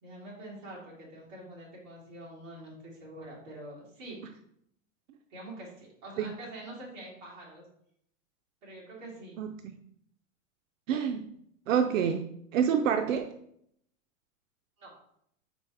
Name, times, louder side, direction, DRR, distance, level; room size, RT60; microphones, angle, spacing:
voice 1, 0.0-4.2 5.3-7.6 8.6-9.3 14.8-14.9, right 1 dB, 25° right, -5 dB, 2.2 m, -45 dB
voice 2, 9.4-9.7 10.9-11.3 11.7-12.2 12.5-13.3, right 8 dB, 70° right, 6 dB, 0.6 m, -27 dB
5.1 x 4.1 x 4.6 m, 0.71 s
supercardioid pair, 170°, 40 cm